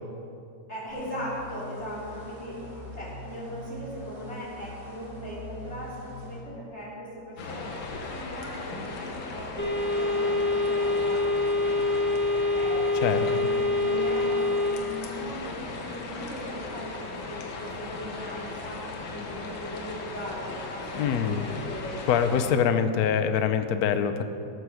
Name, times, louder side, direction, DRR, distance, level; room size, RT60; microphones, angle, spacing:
voice 1, 0.7-7.8 8.1-11.3 12.5-13.0 13.3-21.9, equal, 30° left, -6 dB, 3.7 m, -39 dB
sound 1, 0.9-6.4, equal, 25° right, 3.0 m, -43 dB
sound 2, 7.4-22.5, left 3 dB, 85° left, 2.1 m, -37 dB
sound 3, 9.6-14.7, left 2 dB, 10° left, 0.9 m, -25 dB
voice 2, 20.9-21.4 22.0-24.2, left 7 dB, 65° left, 9 dB, 1.0 m, -24 dB
18.0 x 7.9 x 6.4 m, 2.6 s
omnidirectional pair, 2.2 m